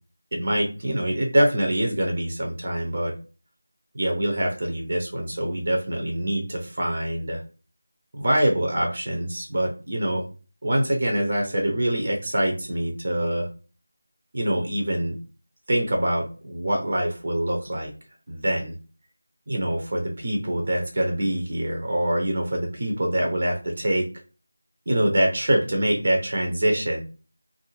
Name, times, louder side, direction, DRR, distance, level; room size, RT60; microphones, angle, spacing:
voice 1, 0.3-3.1 3.9-7.4 8.1-10.2 10.6-13.5 14.3-15.1 15.7-17.9 18.3-18.7 19.5-24.0 24.9-27.0, right 1 dB, 40° right, 1 dB, 0.6 m, -24 dB
2.4 x 2.0 x 3.1 m, 0.35 s
figure-of-eight pair, 170°, 0 cm